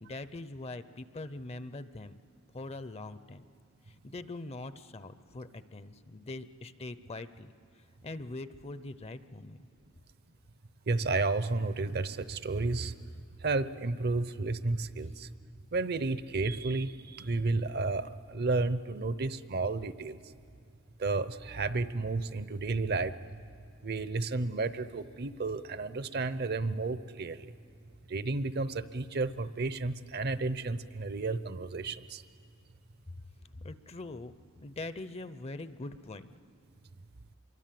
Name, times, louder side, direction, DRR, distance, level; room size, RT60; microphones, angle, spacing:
voice 1, 0.0-2.1 2.5-3.4 3.9-7.5 8.0-9.6 33.6-34.3 34.6-36.3, left 2 dB, 30° left, 13 dB, 0.6 m, -42 dB
voice 2, 10.9-12.9 13.4-15.3 15.7-20.2 21.0-23.1 23.8-27.5 28.1-32.2, right 3 dB, 50° right, 14 dB, 0.7 m, -32 dB
26.5 x 23.0 x 7.6 m, 2.5 s
head